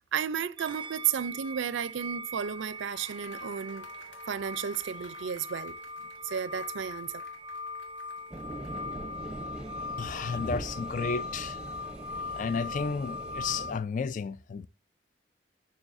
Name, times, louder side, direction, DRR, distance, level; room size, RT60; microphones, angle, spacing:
voice 1, 0.1-3.9 4.3-5.8 6.2-7.2, right 8 dB, 85° right, 0.4 m, -33 dB
sound 1, 0.6-13.7, left 2 dB, 25° right, 0.4 m, -40 dB
sound 2, 2.3-9.0, left 1 dB, 75° left, 1.8 m, -55 dB
sound 3, 8.3-13.8, right 1 dB, 5° right, 0.8 m, -41 dB
voice 2, 10.0-11.6 12.3-14.7, left 5 dB, 45° left, 0.3 m, -32 dB
7.1 x 6.1 x 2.5 m
head